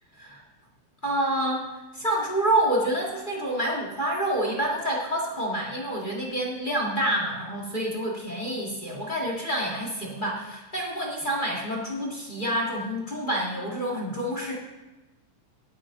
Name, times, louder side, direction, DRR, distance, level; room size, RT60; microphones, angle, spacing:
voice 1, 1.0-1.6 1.9-14.5, right 1 dB, 20° left, -1 dB, 1.4 m, -28 dB
17.5 x 9.2 x 3.8 m, 1.1 s
omnidirectional pair, 3.5 m